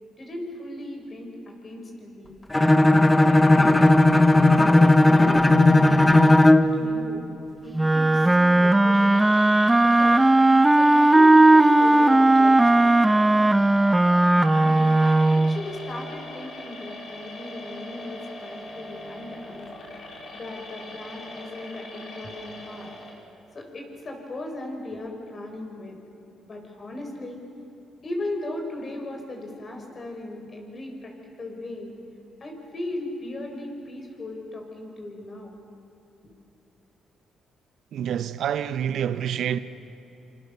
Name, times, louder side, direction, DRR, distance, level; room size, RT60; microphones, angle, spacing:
voice 1, 0.2-2.4 3.3-7.2 7.6-9.3 9.8-10.3 10.8-12.8 14.5-19.7 20.3-22.9 23.5-26.0 26.4-27.5 28.0-31.9 32.4-35.5, left 1 dB, 40° left, 5.9 m, -37 dB
Bowed string instrument, 2.5-6.8, left 2 dB, 15° left, 1.2 m, -16 dB
Wind instrument woodwind instrument, 7.7-15.6, right 2 dB, 10° right, 0.8 m, -17 dB
sound 1, 9.1-23.1, left 1 dB, 65° left, 4.9 m, -41 dB
voice 2, 37.9-39.6, right 9 dB, 70° right, 1.0 m, -27 dB
27.5 x 27.0 x 6.9 m
cardioid pair, 90°, 0 cm